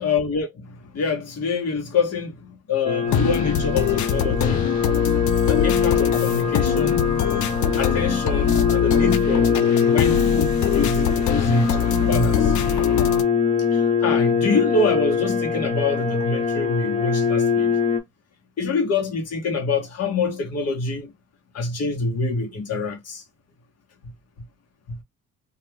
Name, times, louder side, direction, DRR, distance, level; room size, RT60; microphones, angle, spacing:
voice 1, 0.0-4.7 5.5-7.0 7.8-9.5 9.8-12.5 13.7-17.8 18.6-21.1 21.5-23.2 24.9-25.0, left 3 dB, 55° left, 1.1 m, -25 dB
sound 1, 2.8-18.0, left 6 dB, 25° left, 0.7 m, -22 dB
sound 2, 3.1-13.2, left 10 dB, 75° left, 0.4 m, -24 dB
2.4 x 2.3 x 3.1 m
cardioid pair, 90°, 30 cm